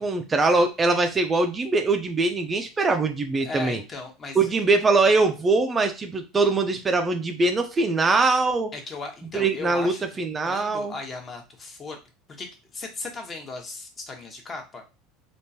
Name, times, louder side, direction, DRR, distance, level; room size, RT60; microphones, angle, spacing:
voice 1, 0.0-3.8 4.4-8.7 9.3-10.9, right 3 dB, 20° right, 6 dB, 0.5 m, -22 dB
voice 2, 3.4-4.5 8.7-10.2 10.4-12.0 12.3-14.8, left 3 dB, 30° left, 3 dB, 1.0 m, -37 dB
3.5 x 2.5 x 2.8 m, 0.30 s
supercardioid pair, 110°, 0 cm